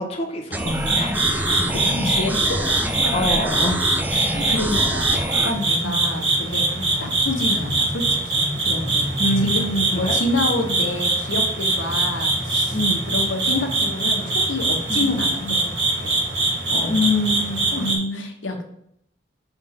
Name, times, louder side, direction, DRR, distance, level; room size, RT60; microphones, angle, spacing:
voice 1, 0.0-1.7 3.1-3.9 4.4-4.5 5.8-6.0 6.8-7.0 9.2-10.2 12.7-13.2 14.9-15.5 16.9-18.2, left 1 dB, 35° left, 0 dB, 0.8 m, -26 dB
sound 1, 0.5-5.5, right 1 dB, 10° right, 0.5 m, -26 dB
sound 2, 0.7-18.0, right 2 dB, 65° right, 2.2 m, -23 dB
voice 2, 1.4-2.6 3.0-3.1 4.1-9.1 9.4-9.6 9.9-12.8 13.1-16.1 16.7-17.0 17.7-17.9 18.1-18.6, left 2 dB, 80° left, 3 dB, 1.0 m, -28 dB
5.5 x 3.5 x 5.7 m, 0.73 s
head